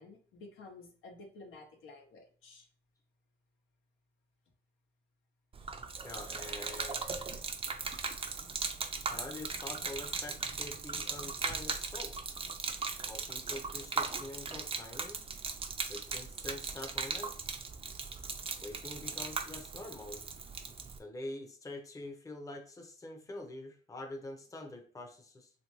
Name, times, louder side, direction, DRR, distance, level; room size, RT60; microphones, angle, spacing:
voice 1, 0.0-2.7, left 3 dB, 85° left, 2 dB, 0.9 m, -52 dB
Gurgling / Liquid, 5.5-21.0, right 4 dB, 30° right, 0.4 m, -38 dB
voice 2, 6.0-7.1 9.1-12.1 13.1-15.2 15.9-17.3 18.6-20.2 21.0-25.5, left 2 dB, 15° left, 3 dB, 0.6 m, -45 dB
3.2 x 2.6 x 3.0 m, 0.43 s
cardioid pair, 90°, 20 cm